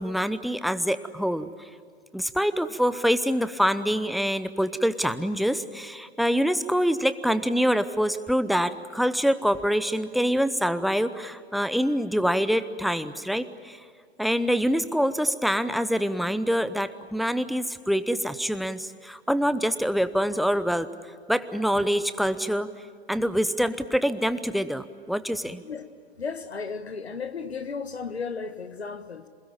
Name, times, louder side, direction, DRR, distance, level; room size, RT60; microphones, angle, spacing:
voice 1, 0.0-1.7 2.1-13.8 14.2-20.9 21.3-22.7 23.1-25.6, equal, ahead, 12 dB, 0.8 m, -25 dB
voice 2, 26.2-29.3, left 5 dB, 80° left, 9 dB, 1.6 m, -34 dB
28.0 x 21.5 x 8.8 m, 2.1 s
figure-of-eight pair, 110°, 31 cm